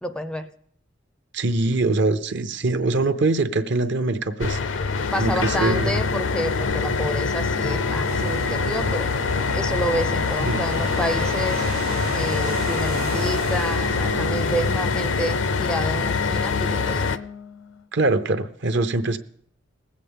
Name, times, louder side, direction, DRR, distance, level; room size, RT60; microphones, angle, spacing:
voice 1, 0.0-0.5 5.1-9.1 9.5-11.7 12.1-17.2, equal, 5° left, 9 dB, 0.4 m, -29 dB
voice 2, 1.3-4.6 5.2-5.9 10.4-10.6 17.9-19.2, right 2 dB, 60° right, 10 dB, 0.7 m, -23 dB
sound 1, 4.4-17.2, left 4 dB, 65° left, 0.5 m, -24 dB
sound 2, 7.5-17.8, left 5 dB, 85° left, 0.9 m, -36 dB
sound 3, 8.1-14.7, right 6 dB, 90° right, 0.4 m, -34 dB
20.0 x 8.3 x 3.7 m, 0.64 s
head